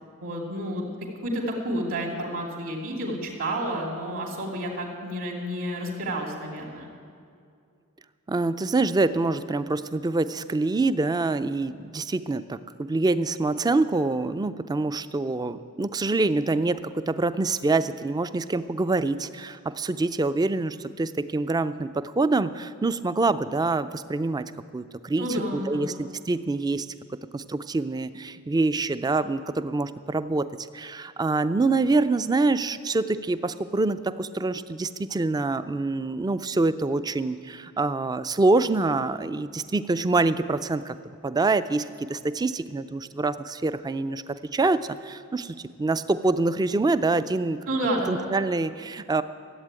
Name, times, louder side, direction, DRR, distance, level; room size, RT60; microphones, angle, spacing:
voice 1, 0.2-0.8 1.2-6.9 25.2-25.9 47.7-48.3, right 1 dB, 65° right, 0 dB, 2.7 m, -30 dB
voice 2, 8.3-24.5 24.7-25.3 25.5-26.9 27.3-30.5 30.7-41.0 41.2-47.6 48.1-49.2, right 3 dB, 20° right, 13 dB, 0.4 m, -25 dB
14.5 x 8.2 x 8.8 m, 2.3 s
head